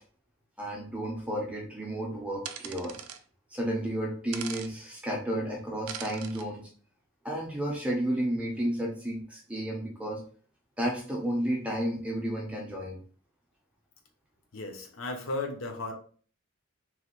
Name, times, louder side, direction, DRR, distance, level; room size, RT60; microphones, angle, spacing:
voice 1, 0.6-3.0 3.5-6.7 7.2-10.2 10.8-13.0, right 1 dB, 5° right, -1 dB, 0.5 m, -32 dB
sound 1, 2.4-3.2 4.3-4.7 5.9-6.4, right 9 dB, 80° right, 0.3 m, -40 dB
voice 2, 14.5-15.9, left 2 dB, 65° left, 3 dB, 0.7 m, -35 dB
3.0 x 2.2 x 2.9 m, 0.43 s
head